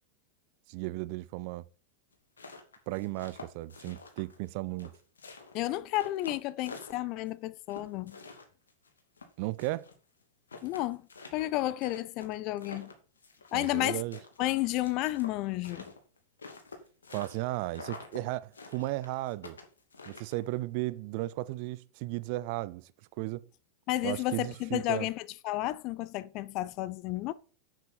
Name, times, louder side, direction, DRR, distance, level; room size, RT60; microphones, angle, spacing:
voice 1, 0.7-1.6 2.9-4.9 9.4-9.9 13.5-14.2 17.1-19.6 20.1-22.9 23.2-23.4 24.0-25.1, right 19 dB, 45° right, 0.7 m, -35 dB
sound 1, 2.1-4.5 4.8-7.3 7.7-9.9 10.2-10.3 10.5-13.8 14.1-17.4 17.7-18.2 18.5-20.6, left 4 dB, 70° left, 2.4 m, -47 dB
voice 2, 5.5-8.2 10.6-12.9 13.5-14.0 14.4-15.9 23.9-27.3, left 16 dB, 40° left, 0.6 m, -32 dB
11.0 x 8.0 x 4.4 m
figure-of-eight pair, 90°, 0 cm